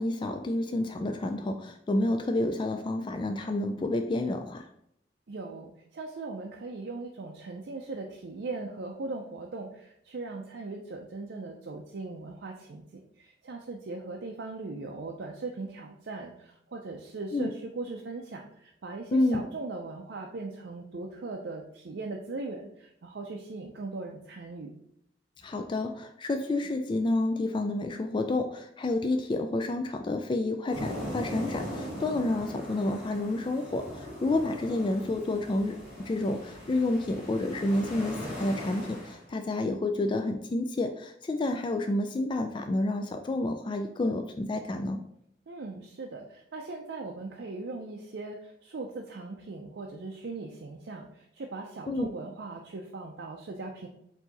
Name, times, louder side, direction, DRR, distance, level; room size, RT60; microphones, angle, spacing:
voice 1, 0.0-4.7 17.3-17.5 19.1-19.4 25.4-45.0 51.9-52.1, left 2 dB, 30° left, 5 dB, 0.3 m, -29 dB
voice 2, 5.3-24.7 45.5-53.9, right 3 dB, 75° right, 0 dB, 0.5 m, -39 dB
sound 1, 30.7-39.2, equal, 5° right, 1.8 m, -39 dB
4.6 x 2.7 x 4.0 m, 0.72 s
head